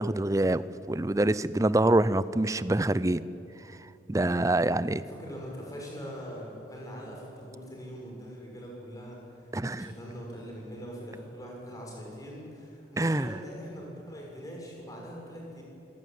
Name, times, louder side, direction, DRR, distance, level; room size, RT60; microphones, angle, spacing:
voice 1, 0.0-3.3 4.1-5.0 9.5-9.9 13.0-13.3, right 1 dB, 20° right, 16 dB, 0.5 m, -25 dB
voice 2, 4.5-15.6, equal, 20° left, -2 dB, 6.6 m, -42 dB
25.5 x 18.0 x 9.4 m, 2.8 s
head